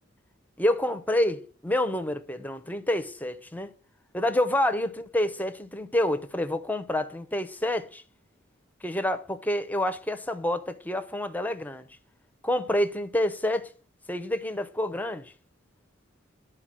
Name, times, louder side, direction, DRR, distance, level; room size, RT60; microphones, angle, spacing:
voice 1, 0.6-3.7 4.1-8.0 8.8-11.9 12.4-13.7 14.1-15.3, left 1 dB, 10° left, 0.7 m, -28 dB
11.5 x 4.5 x 7.5 m
head